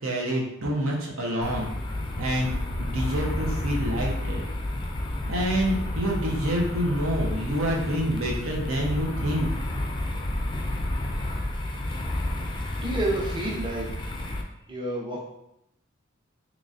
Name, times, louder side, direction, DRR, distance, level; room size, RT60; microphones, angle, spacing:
voice 1, 0.0-1.7 2.2-2.5 2.8-4.4 5.3-9.5, equal, 80° right, -1 dB, 0.8 m, -27 dB
sound 1, 1.4-14.4, left 1 dB, 20° left, 0.4 m, -30 dB
voice 2, 12.8-14.4 14.7-15.2, right 1 dB, 25° right, -3 dB, 0.7 m, -30 dB
3.8 x 3.0 x 2.5 m, 0.80 s
head